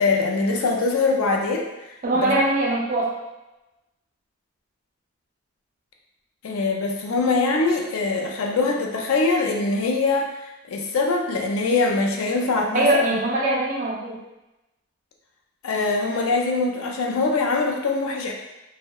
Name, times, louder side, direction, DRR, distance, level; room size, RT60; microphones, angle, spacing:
voice 1, 0.0-2.3 6.4-13.2 15.6-18.3, left 3 dB, 90° left, 1 dB, 0.4 m, -23 dB
voice 2, 2.0-3.1 12.7-14.2, right 1 dB, 40° right, -3 dB, 0.4 m, -21 dB
2.6 x 2.1 x 2.2 m, 0.99 s
head